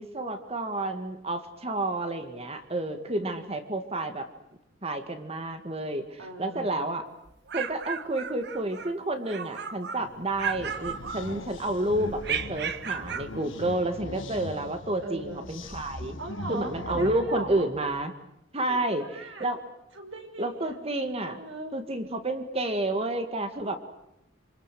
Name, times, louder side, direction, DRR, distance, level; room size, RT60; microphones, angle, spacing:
voice 1, 0.0-4.2 4.8-7.0 7.5-16.2 16.5-18.1 18.5-19.6 20.4-21.4 21.7-23.8, right 2 dB, 30° right, 7 dB, 2.1 m, -30 dB
voice 2, 3.1-3.4 6.2-6.7 15.0-15.5 16.2-17.7 18.6-19.5 19.9-20.8 21.3-21.7 23.6-23.8, right 2 dB, 90° right, 4 dB, 6.1 m, -40 dB
sound 1, 7.3-8.9 9.3-10.1 10.4-11.6 12.2-13.3, right 7 dB, 60° right, 1.5 m, -34 dB
sound 2, 10.0-18.1, left 2 dB, 85° left, 1.7 m, -41 dB
27.5 x 26.5 x 7.7 m, 0.80 s
head